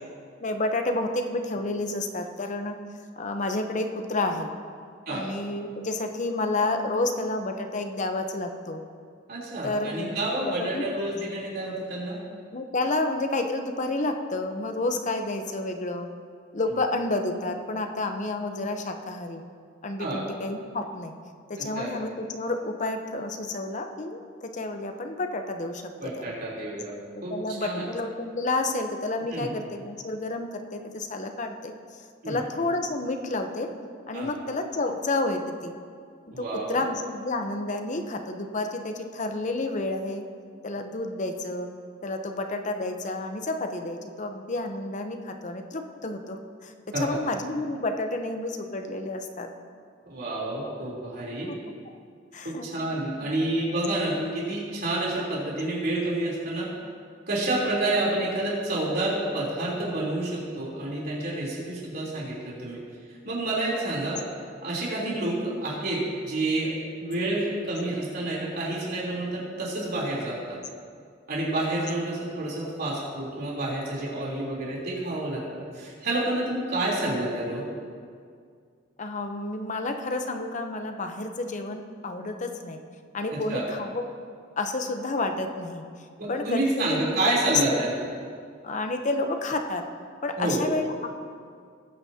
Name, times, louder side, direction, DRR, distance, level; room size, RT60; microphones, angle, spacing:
voice 1, 0.4-2.8 3.2-4.5 5.1-8.8 9.6-10.9 12.5-16.1 16.5-19.4 19.8-21.1 21.5-26.4 27.3-31.7 32.3-33.7 34.1-35.7 36.4-40.2 40.6-41.7 42.0-49.5 51.5-51.7 52.3-52.7 53.2-53.3 65.0-65.2 79.0-82.8 83.1-84.1 84.6-85.8 86.3-88.0 88.6-89.9 90.2-91.2, left 2 dB, 40° left, 6 dB, 0.8 m, -30 dB
voice 2, 9.3-12.2 20.0-20.2 21.6-21.9 26.0-26.9 27.2-27.8 29.3-29.5 32.2-32.4 34.1-34.3 36.3-36.8 46.9-47.1 50.1-51.5 52.4-56.7 57.3-62.8 63.3-64.2 64.6-70.6 71.3-75.4 75.7-77.6 83.3-83.6 86.2-87.9 90.4-90.6, right 2 dB, 55° right, -5 dB, 3.5 m, -29 dB
19.0 x 9.5 x 2.8 m, 2.1 s
head